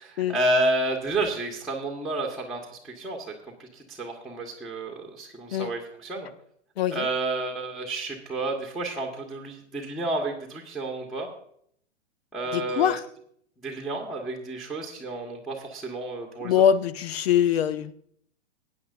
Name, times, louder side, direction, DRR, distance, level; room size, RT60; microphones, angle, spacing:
voice 1, 0.0-3.3 3.6-6.3 6.9-11.3 12.3-12.9 13.6-16.5, right 2 dB, ahead, -1 dB, 1.5 m, -30 dB
voice 2, 6.8-7.1 12.5-13.0 16.4-17.9, left 9 dB, 60° left, 15 dB, 0.8 m, -23 dB
19.5 x 9.5 x 2.6 m, 0.65 s
figure-of-eight pair, 110°, 36 cm